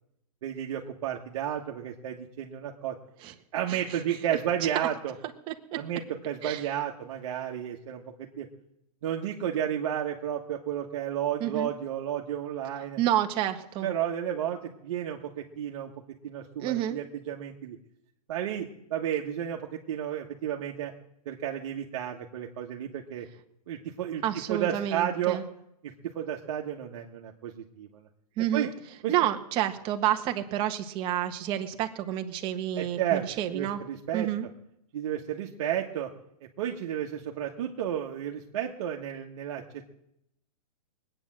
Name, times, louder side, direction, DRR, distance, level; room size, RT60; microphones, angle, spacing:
voice 1, 0.4-3.0 3.5-5.1 5.7-8.5 9.0-13.0 13.8-15.9 16.2-17.8 18.3-20.9 21.2-23.3 23.7-24.2 24.5-25.4 26.0-28.0 28.5-28.7 29.0-29.1 32.8-33.2 33.5-34.3 34.9-36.1 36.6-39.8, right 10 dB, 50° right, 0 dB, 1.5 m, -32 dB
voice 2, 3.7-4.0 4.3-4.4 4.7-4.9 5.5-5.8 6.4-6.6 11.4-11.7 13.0-13.9 16.6-17.0 24.2-25.4 28.4-28.7 29.1-33.8 34.1-34.5, right 12 dB, 25° right, 6 dB, 1.3 m, -29 dB
20.5 x 9.1 x 7.6 m, 0.79 s
hypercardioid pair, 155°, 20 cm